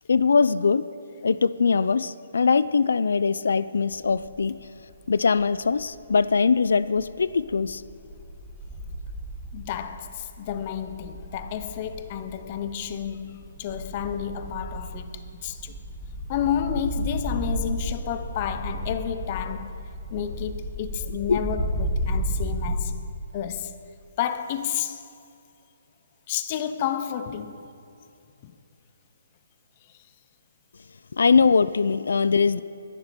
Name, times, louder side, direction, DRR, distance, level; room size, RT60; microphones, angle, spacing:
voice 1, 0.1-0.9 1.2-4.6 5.1-7.8 21.3-21.4 31.1-32.6, left 5 dB, 75° left, 0.4 m, -21 dB
sound 1, 3.9-4.5 4.9-6.3 6.7-22.7, equal, ahead, 1.3 m, -33 dB
voice 2, 9.5-15.8 16.3-19.8 20.1-23.0 23.3-23.8 24.2-25.0 26.3-27.7 28.4-28.5 29.9-30.1, left 9 dB, 25° left, 0.6 m, -31 dB
22.0 x 11.0 x 4.5 m
hypercardioid pair, 175°, 0 cm